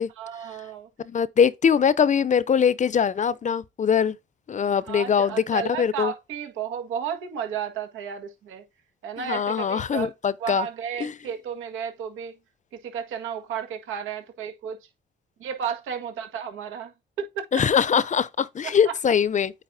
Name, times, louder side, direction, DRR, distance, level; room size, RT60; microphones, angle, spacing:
voice 1, 0.2-0.9 4.8-8.6 9.0-10.1 10.4-12.4 12.8-14.8 15.4-17.4 18.6-19.0, right 7 dB, 85° right, 1.7 m, -33 dB
voice 2, 1.0-4.2 4.5-6.1 9.3-10.7 11.0-11.1 17.5-19.5, left 7 dB, 40° left, 0.6 m, -22 dB
9.0 x 4.0 x 2.7 m
cardioid pair, 90°, 20 cm